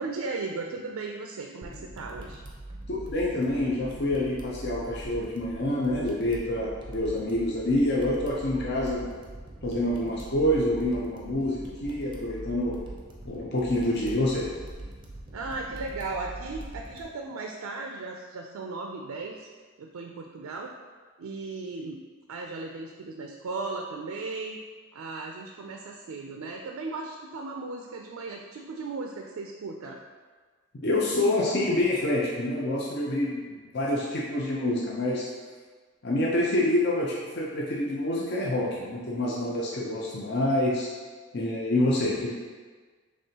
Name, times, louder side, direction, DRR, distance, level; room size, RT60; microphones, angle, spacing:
voice 1, 0.0-2.4 15.3-19.5 19.8-20.7 21.2-22.0 22.3-24.6 24.9-30.0, right 3 dB, 75° right, 1 dB, 0.4 m, -36 dB
sound 1, 1.6-17.0, right 1 dB, 20° right, 0.6 m, -42 dB
voice 2, 2.9-9.0 9.6-12.8 13.2-14.5 30.7-35.3 36.0-40.9 41.3-42.3, left 1 dB, 50° left, -4 dB, 0.6 m, -27 dB
5.3 x 3.2 x 2.8 m, 1.4 s
head